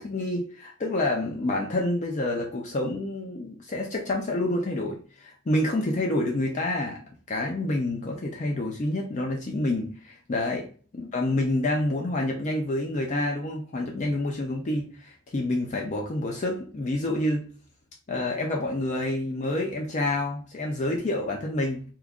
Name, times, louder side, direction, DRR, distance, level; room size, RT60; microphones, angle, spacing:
voice 1, 0.0-7.0 7.3-10.7 10.9-17.5 18.1-21.8, left 1 dB, 35° left, 0.4 m, -28 dB
3.0 x 2.3 x 3.5 m
head